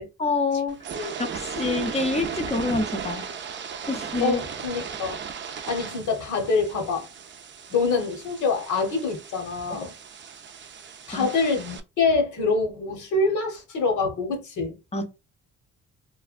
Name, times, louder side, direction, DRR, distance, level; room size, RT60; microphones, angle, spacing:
voice 1, 0.2-3.3 3.9-4.4 11.1-11.3 14.9-15.0, left 3 dB, 20° left, 0.7 m, -27 dB
sound 1, 0.7-11.8, right 6 dB, 40° right, 0.5 m, -36 dB
voice 2, 4.2-5.2 5.7-7.1 7.7-9.9 11.1-14.8, left 4 dB, 75° left, 1.1 m, -25 dB
3.3 x 2.2 x 2.5 m
cardioid pair, 90°, 30 cm